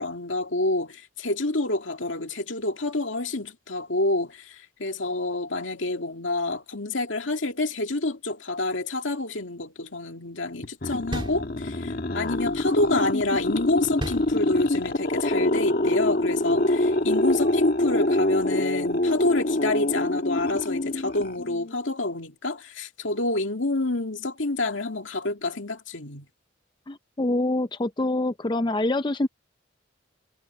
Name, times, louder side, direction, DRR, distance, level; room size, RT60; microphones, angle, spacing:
voice 1, 0.0-26.3, left 2 dB, 75° left, 2.3 m, -28 dB
sound 1, 10.6-21.7, left 1 dB, 50° left, 1.6 m, -25 dB
sound 2, 11.1-12.0 14.0-14.9, equal, 25° right, 3.0 m, -35 dB
voice 2, 26.9-29.3, left 2 dB, 25° left, 0.4 m, -25 dB
head